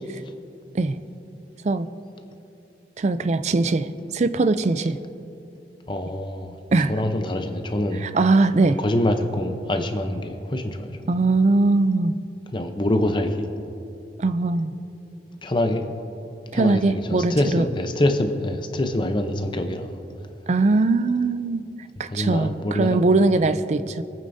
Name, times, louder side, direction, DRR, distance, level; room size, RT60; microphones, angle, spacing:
voice 1, 3.0-5.0 6.7-6.9 8.0-8.8 11.1-12.1 14.2-14.7 16.5-17.6 20.5-21.6 22.0-24.0, right 3 dB, 40° right, 12 dB, 0.4 m, -21 dB
voice 2, 5.9-6.6 6.9-8.1 8.8-11.1 12.5-13.5 15.4-15.9 16.5-20.0 22.1-23.0 23.4-23.5, left 1 dB, 25° left, 6 dB, 0.7 m, -25 dB
24.0 x 9.1 x 2.7 m, 2.8 s
head